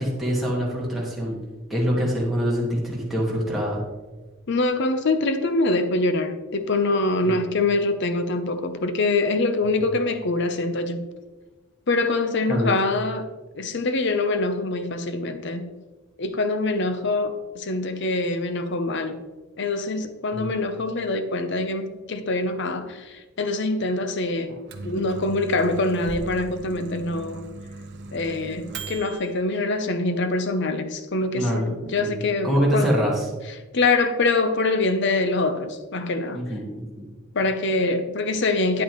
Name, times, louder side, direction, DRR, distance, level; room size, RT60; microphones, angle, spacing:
voice 1, 0.0-1.4 1.7-3.8 7.2-7.4 12.5-12.7 20.3-20.5 31.4-32.2 32.4-33.3 36.3-37.1, equal, ahead, -6 dB, 1.7 m, -25 dB
voice 2, 4.5-11.1 11.9-13.3 13.6-15.7 16.2-19.3 19.6-24.6 24.8-27.5 28.1-32.9 33.7-36.4 37.3-38.8, left 2 dB, 55° left, 9 dB, 0.7 m, -24 dB
Microwave oven, 24.5-29.3, right 3 dB, 55° right, 0.8 m, -38 dB
9.4 x 8.4 x 3.0 m, 1.2 s
head